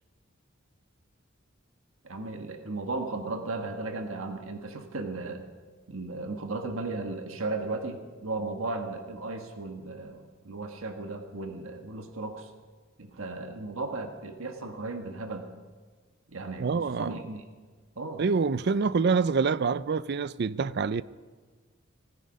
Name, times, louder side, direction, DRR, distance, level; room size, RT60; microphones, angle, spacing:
voice 1, 2.0-5.5 5.9-12.5 13.0-15.5 16.3-17.4 18.0-18.2, right 3 dB, 85° right, 1.5 m, -35 dB
voice 2, 16.6-17.2 18.2-21.0, right 5 dB, 55° right, 0.4 m, -26 dB
17.5 x 15.0 x 5.3 m
head